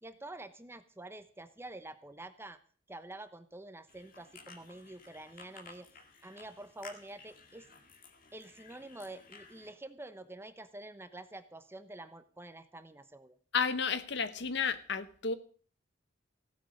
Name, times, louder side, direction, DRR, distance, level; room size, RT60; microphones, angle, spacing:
voice 1, 0.0-2.6 2.9-5.9 6.2-7.7 8.3-13.4, right 2 dB, 15° right, 0.9 m, -47 dB
sound 1, 3.9-9.7, left 4 dB, 50° left, 1.9 m, -55 dB
voice 2, 13.5-15.3, left 6 dB, 65° left, 1.0 m, -32 dB
15.0 x 9.0 x 6.5 m
head